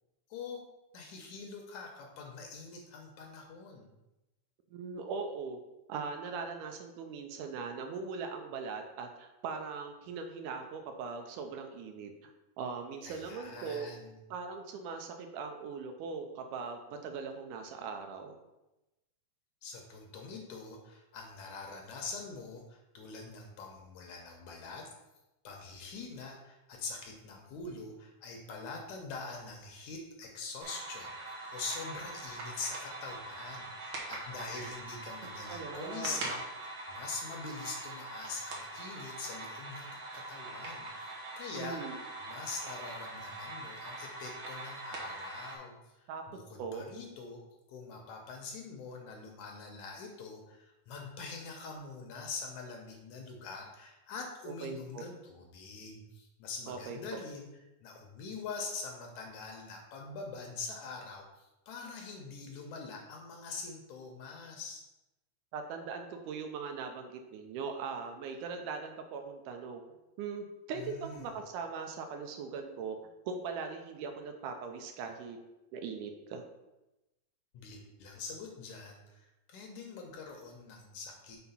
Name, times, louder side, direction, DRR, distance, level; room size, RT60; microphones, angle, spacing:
voice 1, 0.9-3.9 13.0-14.2 19.6-24.9 25.4-41.8 42.2-47.4 47.7-57.5 57.8-64.8 70.8-71.3 77.5-81.4, left 4 dB, 75° left, 2 dB, 2.0 m, -44 dB
voice 2, 4.7-5.6 5.9-13.9 14.3-18.4 35.2-36.2 41.6-42.0 46.1-46.2 46.6-46.9 54.5-55.1 56.7-57.2 65.5-69.8 70.2-73.0 73.3-75.4 75.7-76.4, right 5 dB, 80° right, 5 dB, 2.1 m, -40 dB
sound 1, 30.6-45.6, right 2 dB, 60° right, 1.4 m, -43 dB
5.6 x 4.1 x 5.5 m, 0.97 s
omnidirectional pair, 3.8 m